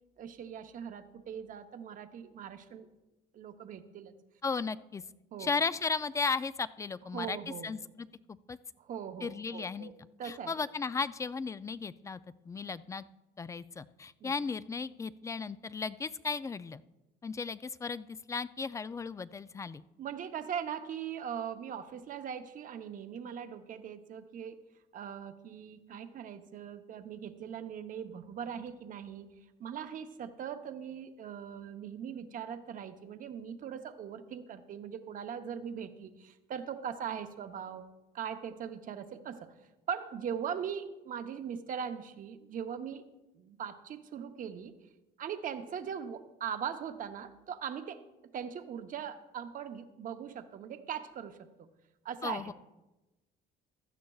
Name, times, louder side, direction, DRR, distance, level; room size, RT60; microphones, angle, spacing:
voice 1, 0.2-2.9 3.3-4.1 5.3-5.5 7.1-7.7 8.8-9.9 10.2-10.5 14.2-14.3 20.0-24.6 24.9-29.3 29.6-37.9 38.1-39.5 39.9-43.0 43.4-44.7 45.2-48.0 48.3-51.7 52.0-52.5, right 8 dB, 55° right, 8 dB, 0.8 m, -40 dB
voice 2, 4.4-5.0 5.4-7.4 7.6-8.1 8.5-8.6 9.2-9.9 10.2-12.2 12.5-13.1 13.4-16.8 17.2-19.8 52.2-52.5, left 4 dB, 20° left, 16 dB, 0.3 m, -35 dB
16.0 x 12.5 x 2.3 m, 1.0 s
cardioid pair, 110°, 17 cm